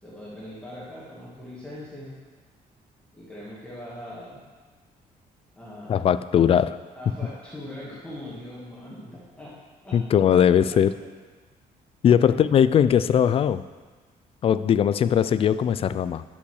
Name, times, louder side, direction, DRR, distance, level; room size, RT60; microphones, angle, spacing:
voice 1, 0.0-2.2 3.1-4.4 5.5-6.1 6.9-9.6 9.8-10.0 10.3-10.4 10.7-10.8 12.1-12.3, left 1 dB, 5° left, -8 dB, 2.1 m, -41 dB
voice 2, 5.9-6.8 9.9-10.9 12.0-13.6 14.4-16.2, left 8 dB, 40° left, 14 dB, 0.4 m, -20 dB
10.5 x 5.8 x 6.4 m, 1.4 s
cardioid pair, 150°, 15 cm